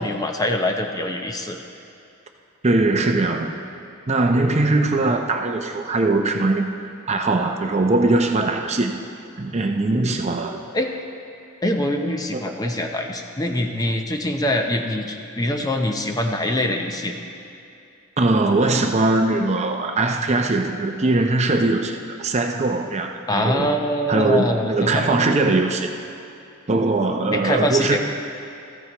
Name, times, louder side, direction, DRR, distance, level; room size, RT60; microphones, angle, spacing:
voice 1, 0.0-1.6 5.1-5.2 10.7-10.9 11.6-17.2 23.3-25.2 27.3-28.0, left 1 dB, 15° left, 3 dB, 0.6 m, -24 dB
voice 2, 2.6-3.6 4.1-8.9 9.4-10.6 12.3-12.7 18.2-23.7 24.1-25.9 26.7-28.0, right 2 dB, 30° right, 4 dB, 0.6 m, -21 dB
14.5 x 13.5 x 3.0 m, 2.7 s
head